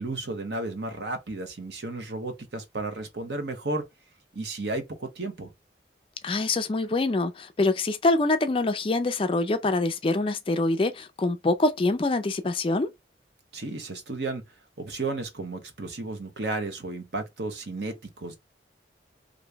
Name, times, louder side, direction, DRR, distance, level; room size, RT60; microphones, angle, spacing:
voice 1, 0.0-3.8 4.3-5.5 13.5-14.4 14.8-18.4, right 2 dB, 65° right, 1.0 m, -33 dB
voice 2, 6.2-12.9, left 2 dB, 30° left, 0.4 m, -25 dB
3.0 x 2.6 x 3.3 m
head